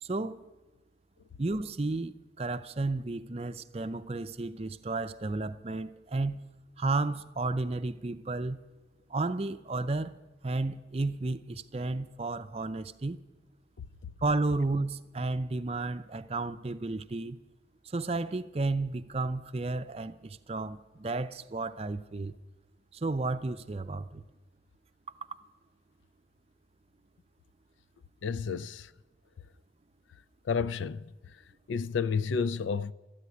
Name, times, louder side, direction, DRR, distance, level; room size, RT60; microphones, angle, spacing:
voice 1, 0.0-0.4 1.4-6.4 6.8-8.6 9.1-10.1 10.4-13.2 14.2-17.4 17.8-22.4 22.9-24.2, right 3 dB, 30° right, 0.5 m, -32 dB
voice 2, 28.2-28.9 30.5-31.1 31.7-32.9, left 5 dB, 80° left, 0.4 m, -30 dB
13.5 x 9.8 x 9.3 m
head